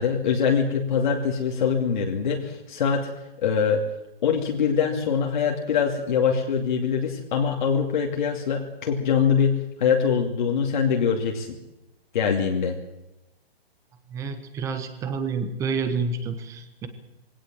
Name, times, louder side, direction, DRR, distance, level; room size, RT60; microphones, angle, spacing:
voice 1, 0.0-3.1 3.4-3.8 4.2-11.6 12.1-12.8, left 6 dB, 50° left, 0 dB, 2.5 m, -23 dB
voice 2, 14.1-16.9, right 4 dB, 10° right, 9 dB, 1.3 m, -29 dB
21.5 x 17.5 x 7.6 m, 0.92 s
hypercardioid pair, 165°, 31 cm